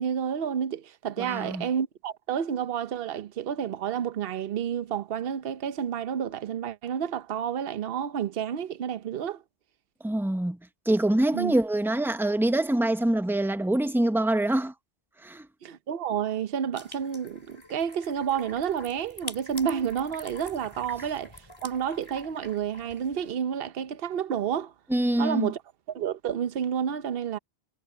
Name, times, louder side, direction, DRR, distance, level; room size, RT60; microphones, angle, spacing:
voice 1, 0.0-9.4 11.3-11.5 15.6-24.7 25.2-25.6 25.9-27.4, right 8 dB, 65° right, 1.0 m, -30 dB
voice 2, 1.2-1.7 10.0-10.6 10.9-14.7 15.2-15.5 24.9-25.5, right 1 dB, ahead, 0.8 m, -25 dB
sound 1, 16.7-23.3, left 1 dB, 25° left, 3.8 m, -45 dB
omnidirectional pair, 1.1 m